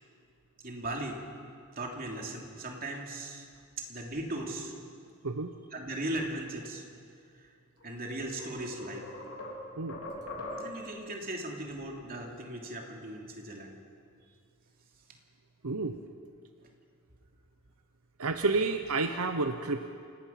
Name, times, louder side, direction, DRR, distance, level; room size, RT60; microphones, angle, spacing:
voice 1, 0.6-1.2 1.8-3.5 3.9-4.7 5.7-6.8 7.8-9.1 10.6-13.7, right 1 dB, 40° right, 1 dB, 3.0 m, -38 dB
sound 1, 7.8-7.9 8.4-11.0, left 1 dB, 70° left, 4.0 m, -41 dB
voice 2, 15.6-16.0 18.2-20.0, right 3 dB, 80° right, 7 dB, 0.9 m, -30 dB
28.0 x 18.5 x 5.9 m, 2.3 s
head